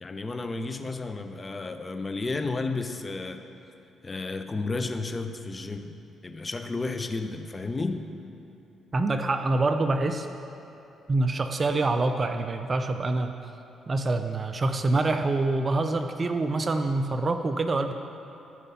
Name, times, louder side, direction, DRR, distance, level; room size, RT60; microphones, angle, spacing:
voice 1, 0.0-3.4 4.0-6.0 6.2-8.1, left 3 dB, 25° left, 8 dB, 0.7 m, -32 dB
voice 2, 8.9-10.3 11.1-13.4 13.9-17.9, right 2 dB, 35° right, 7 dB, 0.5 m, -26 dB
14.0 x 5.2 x 5.6 m, 3.0 s
cardioid pair, 90°, 0 cm